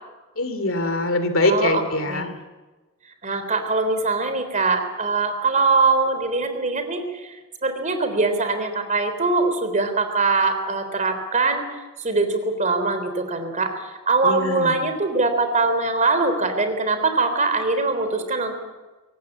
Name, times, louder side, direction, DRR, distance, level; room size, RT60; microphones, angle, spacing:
voice 1, 0.4-2.3 14.2-14.8, left 2 dB, 65° left, 9 dB, 2.7 m, -23 dB
voice 2, 1.4-2.3 3.2-7.4 7.6-11.7 12.0-18.6, right 3 dB, 35° right, 7 dB, 3.7 m, -22 dB
24.0 x 17.5 x 8.5 m, 1.2 s
head